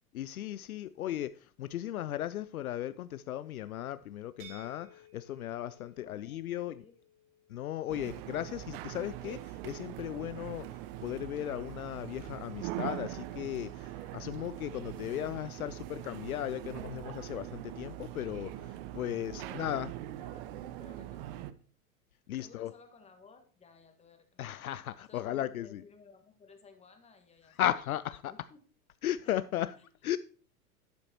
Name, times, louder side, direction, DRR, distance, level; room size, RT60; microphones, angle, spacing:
voice 1, 0.1-6.8 7.5-19.9 22.3-22.7 24.4-25.8 27.6-28.3 29.0-29.8 30.0-30.2, left 12 dB, 70° left, 0.5 m, -36 dB
sound 1, 4.4-10.2, right 1 dB, 60° right, 2.8 m, -59 dB
voice 2, 5.9-7.0 19.1-21.5 22.4-24.6 25.1-27.6 28.3-28.6 29.2-29.3 29.7-29.9, left 5 dB, 15° left, 1.5 m, -58 dB
sound 2, 7.9-21.5, right 14 dB, 40° right, 0.6 m, -42 dB
11.5 x 8.7 x 2.9 m
figure-of-eight pair, 95°, 44 cm